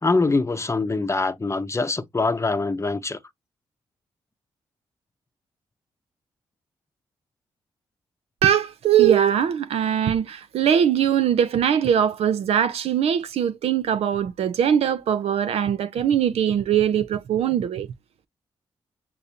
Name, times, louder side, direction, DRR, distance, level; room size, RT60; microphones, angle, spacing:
voice 1, 0.0-3.2, left 3 dB, 25° left, 0.7 m, -24 dB
voice 2, 8.4-17.9, right 9 dB, 70° right, 0.5 m, -21 dB
6.7 x 2.6 x 2.6 m
supercardioid pair, 45°, 11 cm